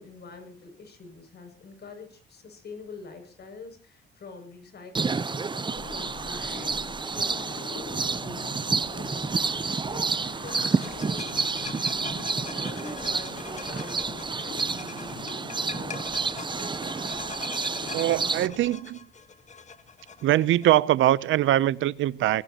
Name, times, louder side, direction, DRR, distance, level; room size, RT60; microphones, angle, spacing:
voice 1, 0.0-11.3 12.5-16.4, left 3 dB, 55° left, 6.9 m, -45 dB
sound 1, 4.9-18.5, right 4 dB, 25° right, 0.7 m, -30 dB
sound 2, 5.7-18.8, left 5 dB, 80° left, 4.0 m, -43 dB
sound 3, 10.5-20.8, left 5 dB, 35° left, 1.6 m, -43 dB
voice 2, 17.9-19.1 20.2-22.4, right 14 dB, 80° right, 0.7 m, -22 dB
22.5 x 17.0 x 3.0 m
cardioid pair, 90°, 20 cm